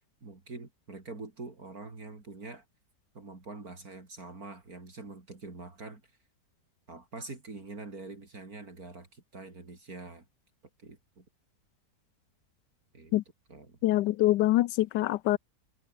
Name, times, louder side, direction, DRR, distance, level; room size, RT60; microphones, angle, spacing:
voice 1, 0.2-2.6 3.1-6.0 6.9-10.3 10.8-11.2 12.9-13.1 13.5-13.8, right 3 dB, 60° right, 4.1 m, -45 dB
voice 2, 13.8-15.4, left 16 dB, 90° left, 1.3 m, -25 dB
omnidirectional pair, 1.8 m